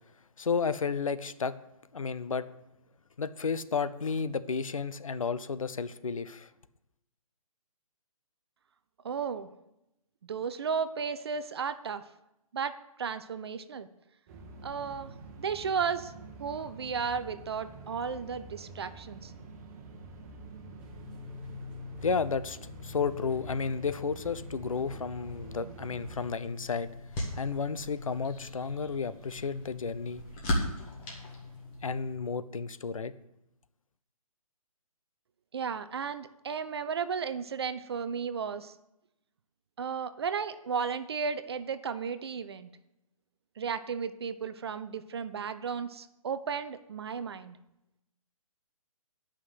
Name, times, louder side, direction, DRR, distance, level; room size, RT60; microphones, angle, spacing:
voice 1, 0.4-1.6 1.9-2.5 3.2-6.5 22.0-26.9 27.4-30.2 31.8-33.1, left 5 dB, 65° left, 13 dB, 0.7 m, -32 dB
voice 2, 9.0-9.5 10.3-12.0 12.5-13.9 14.6-16.1 16.4-19.3 35.5-38.7 39.8-42.7 43.6-47.6, right 6 dB, 45° right, 12 dB, 0.6 m, -34 dB
sound 1, 14.3-26.3, right 2 dB, 30° right, 1.4 m, -47 dB
sound 2, 20.8-31.8, left 4 dB, 5° right, 2.2 m, -47 dB
sound 3, 26.0-32.2, left 1 dB, 20° left, 1.9 m, -38 dB
9.7 x 5.9 x 8.0 m, 0.88 s
figure-of-eight pair, 135°, 19 cm